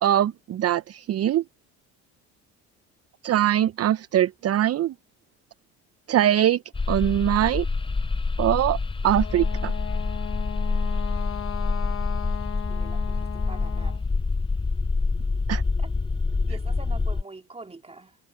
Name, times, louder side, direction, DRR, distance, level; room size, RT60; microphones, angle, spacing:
voice 1, 0.0-1.4 3.2-4.9 6.1-6.6 6.9-7.7 8.4-8.8 9.0-9.7 15.5-15.6, right 11 dB, 45° right, 0.8 m, -22 dB
sound 1, 6.7-17.2, left 3 dB, 15° left, 0.9 m, -26 dB
Wind instrument woodwind instrument, 9.1-14.0, left 10 dB, 40° left, 1.2 m, -37 dB
voice 2, 12.5-14.0 15.8-15.9 16.4-18.2, right 3 dB, 15° right, 2.9 m, -44 dB
hypercardioid pair, 65°, 35 cm